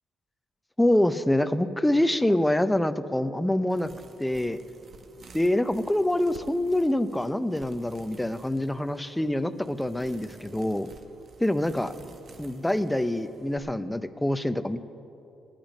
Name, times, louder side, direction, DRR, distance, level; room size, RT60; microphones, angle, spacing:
voice 1, 0.8-3.9 4.2-4.6 5.3-10.9 11.4-11.9 12.4-14.8, left 1 dB, 5° left, 12 dB, 0.6 m, -25 dB
sound 1, 3.7-13.6, right 4 dB, 50° right, 1.0 m, -52 dB
18.0 x 9.0 x 5.3 m, 2.8 s
cardioid pair, 90°, 0 cm